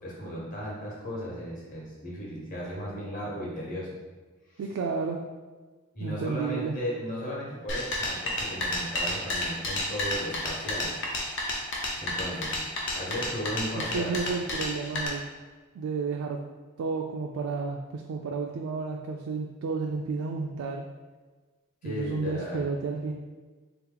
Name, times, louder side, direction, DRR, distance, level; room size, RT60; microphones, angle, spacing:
voice 1, 0.0-4.0 5.9-11.0 12.0-12.6 12.9-14.2 21.8-22.6, equal, 40° left, -5 dB, 1.1 m, -35 dB
voice 2, 4.6-5.2 6.0-6.7 13.8-15.2 15.7-16.4 16.8-20.8 21.8-23.1, right 4 dB, 85° right, 1 dB, 0.3 m, -31 dB
sound 1, 7.7-15.1, left 1 dB, 60° left, 0.7 m, -31 dB
3.6 x 2.9 x 3.8 m, 1.3 s
head